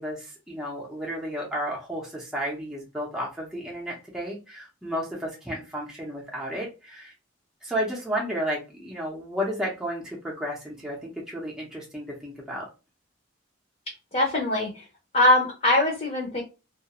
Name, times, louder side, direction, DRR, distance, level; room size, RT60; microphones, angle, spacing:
voice 1, 0.0-7.1 7.6-12.7, equal, 5° right, -4 dB, 0.6 m, -32 dB
voice 2, 14.1-14.8 15.1-16.4, left 1 dB, 35° left, -2 dB, 0.7 m, -22 dB
2.3 x 2.2 x 2.8 m, 0.29 s
head